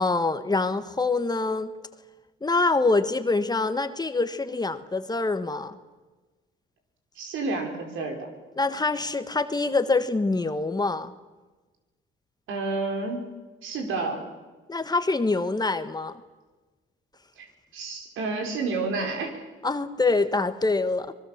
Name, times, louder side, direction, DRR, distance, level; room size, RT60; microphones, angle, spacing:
voice 1, 0.0-1.7 2.4-5.7 8.6-11.1 14.7-16.1 19.6-21.1, left 3 dB, 20° left, 10 dB, 1.4 m, -25 dB
voice 2, 7.2-8.3 12.5-13.2 13.6-14.2 17.4-19.4, right 3 dB, 80° right, 3 dB, 4.8 m, -30 dB
25.0 x 21.0 x 7.4 m, 1.2 s
cardioid pair, 90°, 20 cm